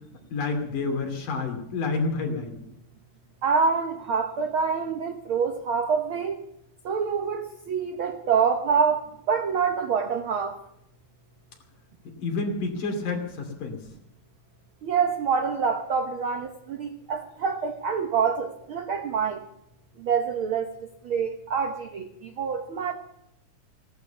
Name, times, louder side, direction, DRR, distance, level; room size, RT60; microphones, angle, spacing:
voice 1, 0.3-2.6 12.2-13.8, left 3 dB, 70° left, 4 dB, 4.3 m, -29 dB
voice 2, 3.4-6.4 6.8-10.5 14.8-19.4 20.0-20.7 21.0-22.9, right 6 dB, 85° right, 6 dB, 1.1 m, -26 dB
17.5 x 11.5 x 6.9 m, 0.81 s
omnidirectional pair, 3.9 m